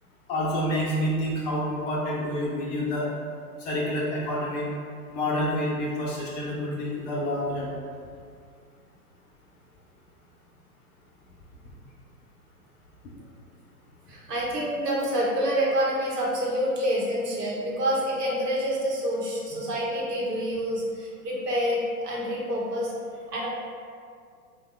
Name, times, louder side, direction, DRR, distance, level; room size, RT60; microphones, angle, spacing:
voice 1, 0.3-3.1 3.6-4.7 5.1-7.7, equal, 30° left, -5 dB, 0.5 m, -28 dB
voice 2, 14.1-23.5, equal, 85° right, -4 dB, 1.1 m, -27 dB
3.2 x 2.2 x 3.4 m, 2.2 s
hypercardioid pair, 120°, 46 cm